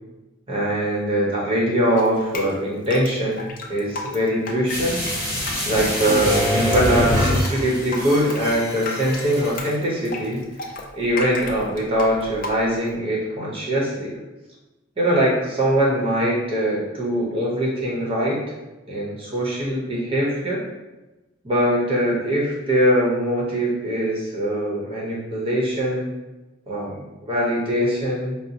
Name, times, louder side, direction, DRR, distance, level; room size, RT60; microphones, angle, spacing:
voice 1, 0.5-3.4 3.7-5.0 5.6-10.4 10.9-14.2 15.0-18.4 18.9-20.6 21.4-26.1 26.7-28.4, equal, 25° right, -4 dB, 0.8 m, -22 dB
Drip, 2.0-12.9, left 2 dB, 45° left, 0.5 m, -34 dB
sound 1, 4.7-9.7 10.0-10.1, left 1 dB, 5° right, 1.0 m, -24 dB
4.9 x 2.0 x 2.7 m, 1.1 s
head